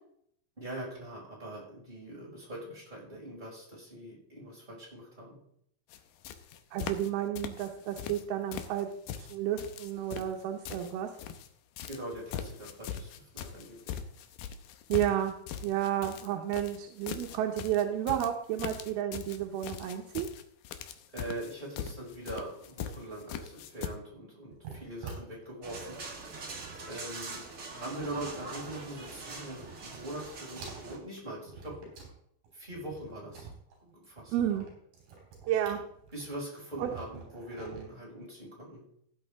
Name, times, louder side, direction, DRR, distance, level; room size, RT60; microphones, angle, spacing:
voice 1, 0.6-5.4 11.9-14.0 21.1-26.2 26.9-31.7 32.5-33.5 33.8-34.7 36.1-38.8, right 1 dB, 10° right, -6 dB, 5.4 m, -42 dB
sound 1, 5.9-6.0 6.2-7.1 7.3-8.2 8.5-11.5 11.8-23.9, left 9 dB, 75° left, 2.1 m, -41 dB
voice 2, 6.7-8.9 9.2-11.1 14.9-15.3 15.6-20.3 34.3-34.7 35.5-35.8 36.8-36.9, right 11 dB, 80° right, 3 dB, 2.8 m, -31 dB
sound 2, 24.5-29.2 29.5-30.3 30.5-32.2 32.4-37.8, right 5 dB, 60° right, 5.3 m, -49 dB
sound 3, 25.6-31.0, right 3 dB, 40° right, 1.4 m, -43 dB
16.0 x 8.6 x 3.6 m, 0.69 s
omnidirectional pair, 4.6 m